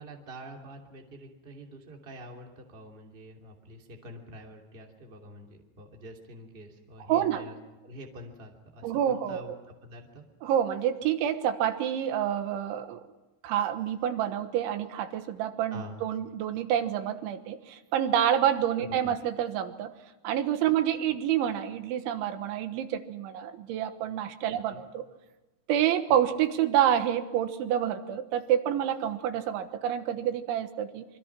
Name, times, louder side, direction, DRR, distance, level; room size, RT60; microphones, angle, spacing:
voice 1, 0.0-7.5 7.8-10.2 15.7-16.0 18.8-19.1 24.4-24.8, equal, 15° right, 1 dB, 2.1 m, -46 dB
voice 2, 7.1-7.4 8.8-9.6 10.4-13.0 13.4-19.9 20.2-25.1 25.7-31.1, right 10 dB, 85° right, 9 dB, 3.6 m, -28 dB
26.5 x 24.0 x 6.0 m, 1.1 s
omnidirectional pair, 5.3 m